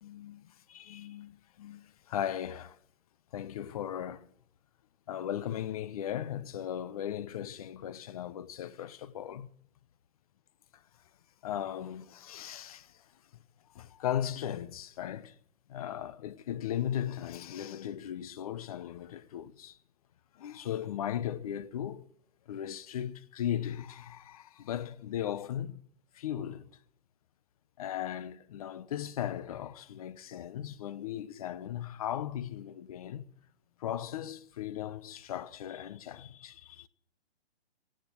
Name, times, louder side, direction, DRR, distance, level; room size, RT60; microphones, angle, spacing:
voice 1, 0.0-2.8 3.3-4.3 5.1-9.5 11.4-13.0 13.7-15.3 15.7-19.8 20.3-22.1 22.5-25.8 26.1-26.7 27.8-33.3 33.8-36.9, left 10 dB, 35° left, 0.8 m, -37 dB
17.5 x 14.5 x 4.5 m
hypercardioid pair, 155°, 34 cm